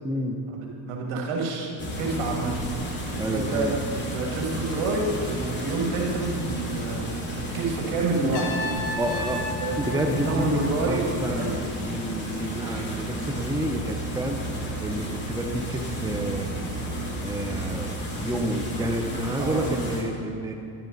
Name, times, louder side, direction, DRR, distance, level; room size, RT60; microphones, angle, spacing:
voice 1, 0.0-0.4 3.2-3.8 9.0-9.5 9.7-10.6 10.9-14.4 14.8-16.5 17.2-20.5, right 1 dB, 10° right, 3 dB, 0.8 m, -29 dB
voice 2, 0.9-2.6 3.3-3.7 4.1-7.1 7.3-8.5 9.6-11.6 19.4-19.7, right 3 dB, 70° right, -1 dB, 2.6 m, -28 dB
sound 1, 1.8-20.0, right 1 dB, 20° left, 2.9 m, -32 dB
Trumpet, 8.3-11.3, left 2 dB, 65° left, 2.2 m, -34 dB
11.5 x 11.5 x 4.1 m, 2.5 s
supercardioid pair, 95°, 49 cm